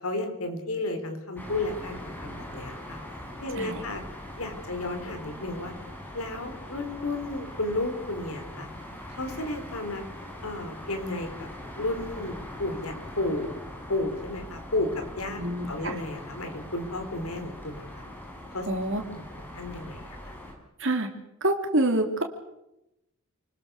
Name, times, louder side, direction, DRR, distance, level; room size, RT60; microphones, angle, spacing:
voice 1, 0.0-3.0 3.4-4.0 4.4-5.7 6.1-8.7 9.1-10.0 10.4-11.5 11.8-13.6 13.9-15.4 15.7-17.8 18.5-19.2 19.5-20.4, left 2 dB, 80° left, 6 dB, 4.0 m, -33 dB
sound 1, 1.4-20.5, left 1 dB, 10° left, 5.3 m, -42 dB
voice 2, 15.4-16.0 18.7-19.0 20.8-21.1 21.4-22.2, right 1 dB, 60° right, 4 dB, 3.4 m, -26 dB
29.0 x 20.0 x 6.9 m, 0.90 s
head